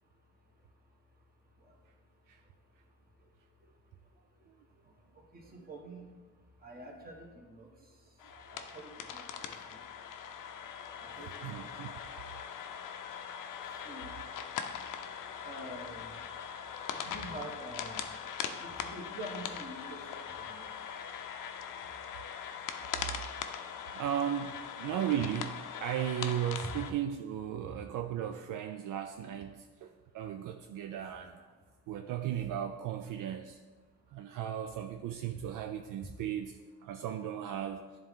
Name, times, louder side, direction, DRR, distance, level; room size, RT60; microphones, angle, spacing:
voice 1, 0.0-24.0 27.6-27.8 31.7-31.8 34.0-34.2, right 1 dB, 25° right, -1 dB, 1.4 m, -51 dB
sound 1, 8.2-26.9, left 8 dB, 65° left, 0.6 m, -41 dB
voice 2, 11.4-11.9 23.9-31.5 31.9-33.6 34.1-36.5 36.8-37.8, right 10 dB, 65° right, 5 dB, 0.5 m, -36 dB
10.5 x 3.7 x 3.6 m, 1.4 s
cardioid pair, 125°, 34 cm